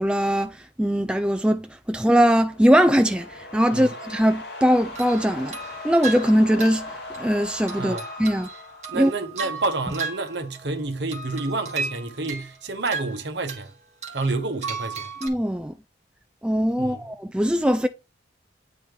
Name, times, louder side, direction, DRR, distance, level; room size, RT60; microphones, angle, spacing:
voice 1, 0.0-5.6 5.8-8.5 8.9-9.1 15.2-15.7 16.4-17.9, equal, 5° right, 0.3 m, -21 dB
sound 1, 2.2-9.3, left 2 dB, 55° left, 2.0 m, -39 dB
sound 2, 4.9-10.8 11.1-13.7 14.0-15.3, right 4 dB, 35° right, 1.8 m, -35 dB
voice 2, 8.9-13.7 14.1-15.1 16.8-17.1, right 3 dB, 65° right, 1.1 m, -29 dB
9.0 x 4.2 x 3.2 m
head